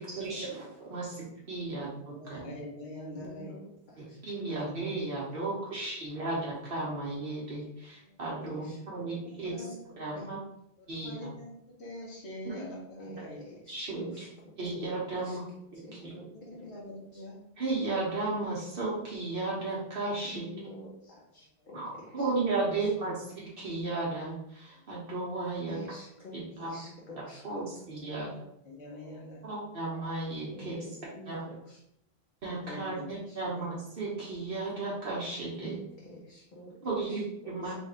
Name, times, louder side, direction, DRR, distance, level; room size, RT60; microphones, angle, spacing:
voice 1, 0.0-2.5 4.0-10.4 10.9-11.3 12.4-12.5 13.0-13.1 13.7-14.3 14.6-15.4 16.0-16.1 17.6-20.5 21.7-25.8 26.3-26.8 27.2-28.3 29.4-30.8 31.2-31.4 32.4-35.8 36.8-37.7, right 3 dB, 60° right, -5 dB, 1.1 m, -34 dB
voice 2, 2.2-3.6 4.5-4.6 6.2-6.3 9.4-10.3 10.9-11.5 11.8-13.4 15.9-17.4 28.1-28.4 28.7-29.4 32.6-33.0 33.5-33.7, left 1 dB, 80° left, -2 dB, 1.3 m, -44 dB
voice 3, 3.1-4.2 5.7-5.8 8.4-9.6 13.0-14.3 15.1-15.4 15.8-16.3 16.6-16.7 17.1-17.2 20.3-21.8 22.2-22.3 25.7-27.4 30.5-31.8 33.3-33.4 35.6-36.7 37.1-37.2 37.4-37.7, equal, 55° left, -4 dB, 0.9 m, -47 dB
3.4 x 2.5 x 4.1 m, 0.75 s
omnidirectional pair, 1.1 m